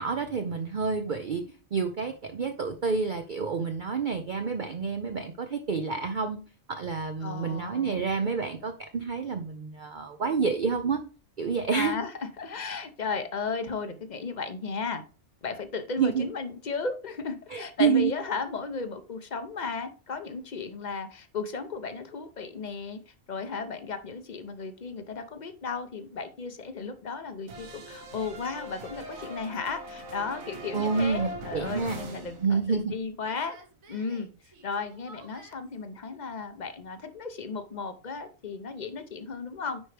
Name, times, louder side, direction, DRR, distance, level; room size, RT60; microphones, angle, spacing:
voice 1, 0.0-6.4 6.7-11.0 11.4-12.0 16.0-16.3 17.5-18.1 30.7-32.0 32.4-32.9, right 5 dB, 50° right, 6 dB, 0.6 m, -28 dB
voice 2, 7.2-8.1 11.7-15.0 15.4-23.0 23.3-33.6 33.9-39.8, left 4 dB, 40° left, 10 dB, 0.8 m, -35 dB
sound 1, 27.5-32.9 33.2-35.5, right 2 dB, 85° right, 1.7 m, -42 dB
9.7 x 4.5 x 3.4 m, 0.37 s
omnidirectional pair, 1.4 m